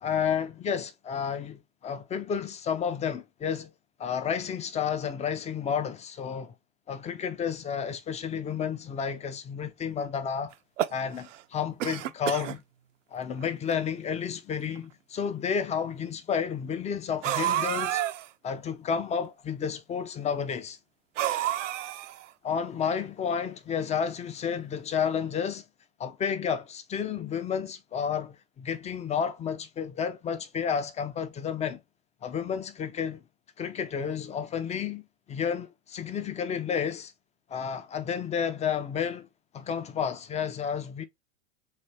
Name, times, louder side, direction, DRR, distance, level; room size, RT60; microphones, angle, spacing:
voice 1, 0.0-3.7 4.0-6.5 6.9-10.5 10.9-12.6 13.1-18.0 18.4-20.8 22.4-25.6 26.0-31.8 32.2-33.2 33.6-35.0 35.3-37.1 37.5-39.3 39.5-41.0, left 7 dB, 15° left, 0.5 m, -31 dB
sound 1, 10.5-11.4 11.8-12.6 13.4-13.5 13.7-13.8 14.8-14.9 17.2-18.3 21.2-22.3, right 13 dB, 70° right, 0.6 m, -29 dB
3.2 x 3.2 x 4.2 m
hypercardioid pair, 90°, 39 cm